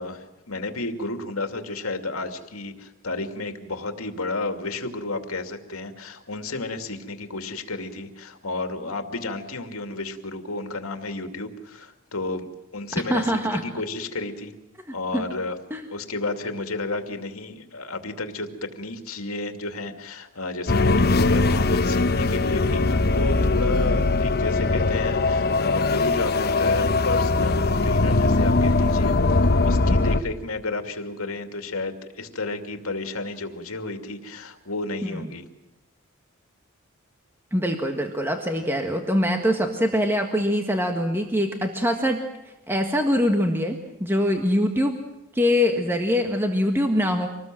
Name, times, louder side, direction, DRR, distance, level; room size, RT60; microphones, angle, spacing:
voice 1, 0.0-14.5 14.9-15.6 15.9-35.5, left 2 dB, 80° left, 7 dB, 2.6 m, -32 dB
voice 2, 12.9-13.6 15.1-15.2 15.7-15.8 35.0-35.2 37.5-42.2 42.7-45.0 45.3-47.3, equal, 10° right, 4 dB, 1.6 m, -23 dB
sound 1, 20.7-30.2, left 3 dB, 45° left, 1.0 m, -21 dB
26.5 x 19.5 x 7.7 m, 0.95 s
head